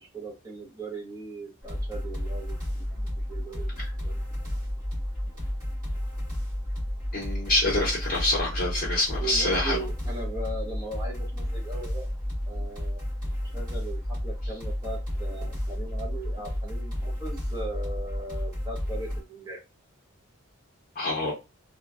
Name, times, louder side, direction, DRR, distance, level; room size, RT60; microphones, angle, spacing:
voice 1, 0.0-4.6 9.2-12.2 12.5-13.1 13.5-19.6, right 2 dB, 15° right, 0.8 m, -39 dB
sound 1, 1.6-19.2, equal, 35° right, 1.7 m, -32 dB
voice 2, 7.1-9.8 20.9-21.3, left 2 dB, 35° left, 0.8 m, -26 dB
2.9 x 2.2 x 2.4 m
head